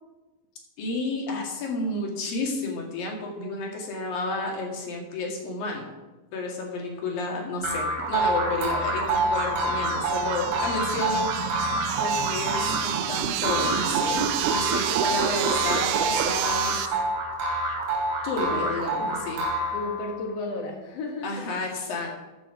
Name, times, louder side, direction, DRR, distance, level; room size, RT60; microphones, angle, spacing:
voice 1, 0.8-5.9 6.3-11.3 12.0-16.8 18.2-19.4 21.2-22.1, left 2 dB, 55° left, 0 dB, 3.4 m, -31 dB
sound 1, 7.6-20.2, right 2 dB, 50° right, 3.9 m, -27 dB
sound 2, 8.9-16.9, right 11 dB, 90° right, 3.2 m, -29 dB
voice 2, 19.7-21.4, left 2 dB, 90° left, 2 dB, 1.4 m, -33 dB
14.0 x 8.7 x 5.0 m, 1.1 s
omnidirectional pair, 5.5 m